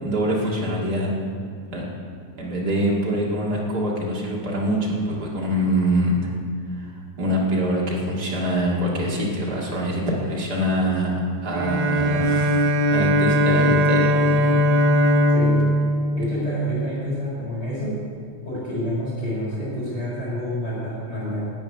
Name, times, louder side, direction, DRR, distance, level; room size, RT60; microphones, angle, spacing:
voice 1, 0.0-1.1 1.7-1.9 2.4-6.1 6.8-11.1 11.4-14.2, equal, 35° right, -3 dB, 2.1 m, -24 dB
Bowed string instrument, 11.5-17.0, equal, 80° right, 2.7 m, -20 dB
voice 2, 15.3-15.7 16.1-18.0 18.4-21.5, equal, 30° left, -8 dB, 4.3 m, -28 dB
12.5 x 7.1 x 9.5 m, 2.3 s
omnidirectional pair, 3.9 m